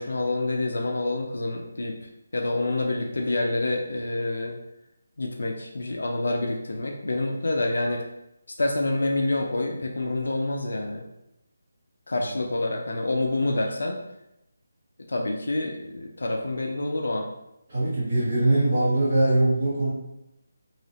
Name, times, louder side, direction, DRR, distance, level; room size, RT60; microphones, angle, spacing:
voice 1, 0.0-1.9 2.3-4.5 5.2-8.0 8.6-11.0 12.1-14.0 15.1-17.3, left 2 dB, 65° left, 2 dB, 0.4 m, -27 dB
voice 2, 17.7-19.9, right 2 dB, 20° right, -10 dB, 1.1 m, -22 dB
3.0 x 2.7 x 2.8 m, 0.86 s
hypercardioid pair, 180°, 0 cm